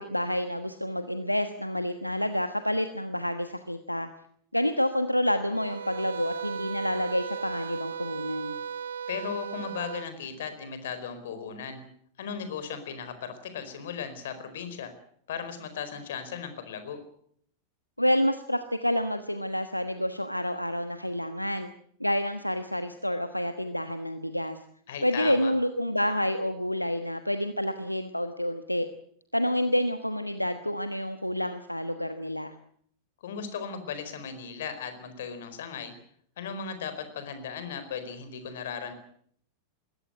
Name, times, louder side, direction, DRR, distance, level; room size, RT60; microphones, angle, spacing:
voice 1, 0.0-4.1 4.5-8.5 18.0-21.7 22.0-24.6 25.0-28.9 29.3-32.5, equal, 90° left, 9 dB, 1.2 m, -28 dB
sound 1, 5.5-10.1, right 6 dB, 65° right, 1.2 m, -36 dB
voice 2, 9.1-11.8 12.2-14.9 15.3-17.0 24.9-25.5 33.2-35.9 36.4-38.9, left 7 dB, 60° left, 10 dB, 4.5 m, -37 dB
21.0 x 17.0 x 9.4 m, 0.65 s
figure-of-eight pair, 90°, 0 cm